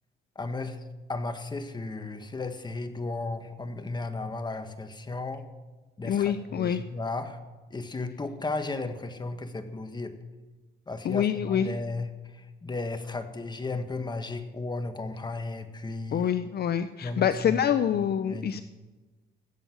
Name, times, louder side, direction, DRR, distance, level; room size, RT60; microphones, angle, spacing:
voice 1, 0.3-0.8 1.1-5.5 6.0-7.4 7.7-10.2 10.9-16.3 17.0-17.6 18.0-18.6, left 3 dB, 20° left, 8 dB, 1.5 m, -35 dB
voice 2, 6.0-6.8 11.0-11.7 16.1-18.6, left 9 dB, 55° left, 12 dB, 0.6 m, -26 dB
16.5 x 8.0 x 7.8 m, 1.2 s
cardioid pair, 90°, 20 cm